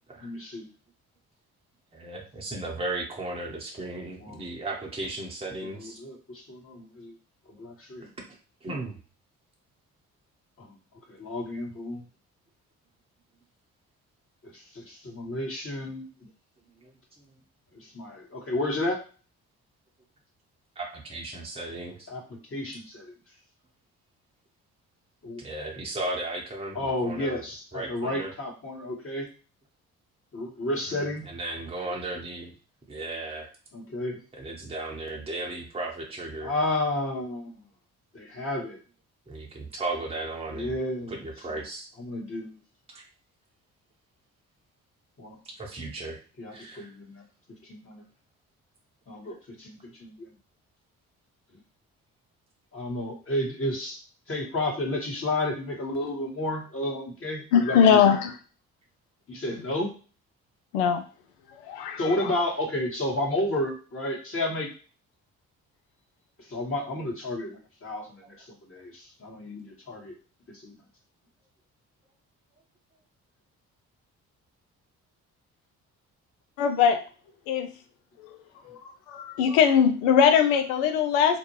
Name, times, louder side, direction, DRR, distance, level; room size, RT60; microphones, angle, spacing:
voice 1, 0.2-0.7 4.2-4.4 5.7-7.1 7.6-8.1 10.6-10.7 11.1-12.0 14.5-16.1 17.7-19.0 22.1-23.1 25.2-25.4 26.7-29.3 30.3-31.3 33.7-34.2 36.4-37.6 38.1-38.8 40.5-41.1 41.4-41.6 42.0-42.5 45.2-45.4 46.4-47.2 47.7-48.0 49.1-50.3 52.7-54.0 54.3-58.1 59.3-59.9 62.0-64.7 66.5-70.1 70.6-70.7, left 1 dB, 30° left, -2 dB, 1.3 m, -31 dB
voice 2, 1.9-6.0 8.0-8.1 8.6-9.0 16.8-16.9 20.8-22.1 25.4-27.4 27.7-28.3 30.9-32.5 32.9-33.5 34.4-36.5 39.3-40.7 41.1-41.9 42.9-43.0 45.6-46.2 46.5-46.9 68.2-68.3, right 2 dB, 15° right, -1 dB, 0.8 m, -35 dB
voice 3, 57.5-58.3 60.7-61.0 61.7-62.3 76.6-77.0 77.5-77.7 78.7-78.8 79.1-81.4, left 7 dB, 70° left, 7 dB, 0.6 m, -21 dB
2.5 x 2.2 x 3.1 m, 0.36 s
figure-of-eight pair, 40°, 42 cm